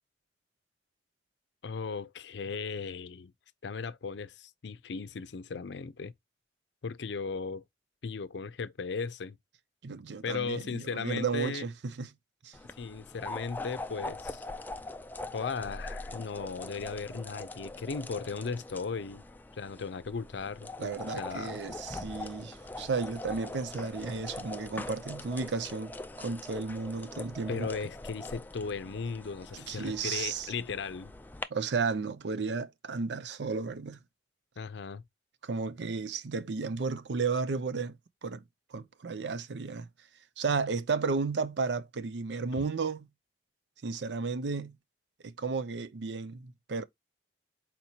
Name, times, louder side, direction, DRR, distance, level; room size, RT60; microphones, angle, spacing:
voice 1, 1.6-3.3 3.6-6.1 6.8-7.6 8.0-9.4 10.2-11.6 12.8-14.5 15.3-19.2 19.5-21.6 27.5-31.1 34.6-35.0 42.6-42.7, left 5 dB, 75° left, 0.5 m, -37 dB
voice 2, 9.8-12.1 12.4-12.6 20.8-27.7 29.5-30.5 31.5-34.0 35.4-38.4 38.7-39.9 40.4-43.1 43.8-44.8 45.2-46.8, right 4 dB, 75° right, 0.5 m, -33 dB
sound 1, 12.5-31.4, left 2 dB, 10° left, 0.3 m, -42 dB
4.4 x 4.3 x 2.7 m
head